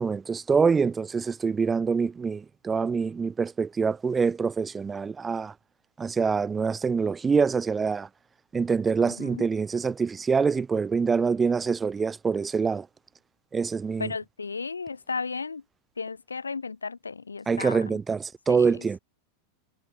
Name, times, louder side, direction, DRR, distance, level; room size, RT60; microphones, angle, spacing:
voice 1, 0.0-5.5 6.0-8.1 8.5-12.9 13.5-14.1 17.5-19.0, right 5 dB, 15° right, 0.4 m, -25 dB
voice 2, 9.0-9.5 14.0-15.6 16.0-18.0 18.5-19.0, left 4 dB, 75° left, 4.2 m, -35 dB
figure-of-eight pair, 90°, 0 cm